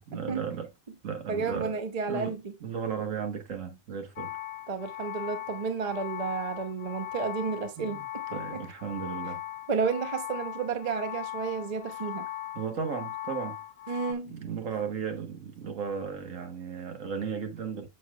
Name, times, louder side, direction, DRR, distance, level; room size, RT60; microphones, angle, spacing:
voice 1, 0.1-0.7 1.0-1.8 2.1-4.4 7.8-8.0 8.3-9.4 12.5-13.6 14.3-17.9, right 6 dB, 70° right, 1.5 m, -35 dB
voice 2, 1.3-2.4 4.7-8.6 9.7-12.3 13.9-14.4, right 5 dB, 35° right, 0.8 m, -32 dB
sound 1, 4.2-14.1, left 13 dB, 90° left, 1.1 m, -39 dB
6.7 x 6.5 x 2.3 m
omnidirectional pair, 1.4 m